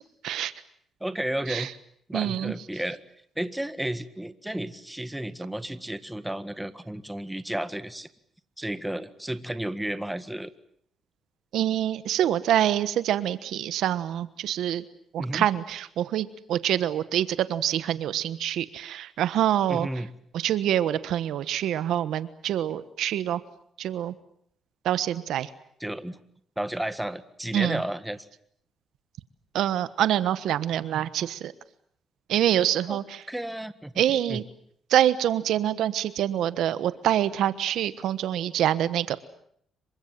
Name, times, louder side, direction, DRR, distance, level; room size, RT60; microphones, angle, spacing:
voice 1, 1.0-1.7 2.1-3.0 3.4-8.1 8.6-10.5 15.2-15.5 19.7-20.1 25.8-26.2 26.6-28.3 32.9-33.0 33.3-34.0 34.3-34.4, right 1 dB, 5° right, 12 dB, 1.7 m, -32 dB
voice 2, 2.1-2.5 11.5-14.8 15.1-19.9 20.3-23.4 23.8-24.1 24.8-25.5 27.5-27.8 29.5-31.5 32.3-33.2 34.0-34.4 34.9-39.2, right 11 dB, 80° right, 14 dB, 1.3 m, -26 dB
27.0 x 24.5 x 7.5 m, 0.67 s
cardioid pair, 90°, 0 cm